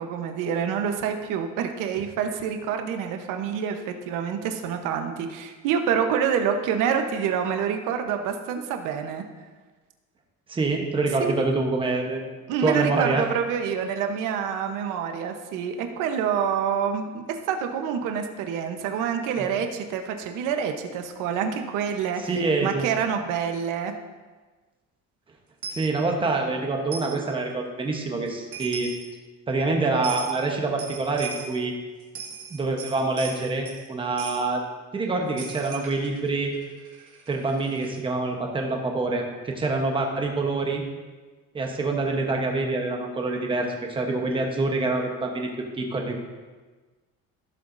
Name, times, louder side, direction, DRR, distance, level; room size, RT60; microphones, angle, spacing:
voice 1, 0.0-9.2 11.2-11.4 12.5-22.2 22.6-23.9, right 7 dB, 70° right, 6 dB, 1.0 m, -27 dB
voice 2, 10.5-12.2 12.6-13.2 22.2-22.8 25.7-28.9 29.5-31.7 32.5-34.6 34.9-36.5 37.3-40.8 41.5-45.5 45.8-46.2, right 3 dB, 15° right, 2 dB, 1.0 m, -26 dB
Coin (dropping), 25.6-25.9 26.9-27.2 28.3-28.4 28.5-29.1 30.0-30.3 30.8-31.5 32.0-33.8 34.2-34.4 35.4-38.0, right 6 dB, 45° right, 2.0 m, -38 dB
15.5 x 7.2 x 2.6 m, 1.3 s
cardioid pair, 180°, 32 cm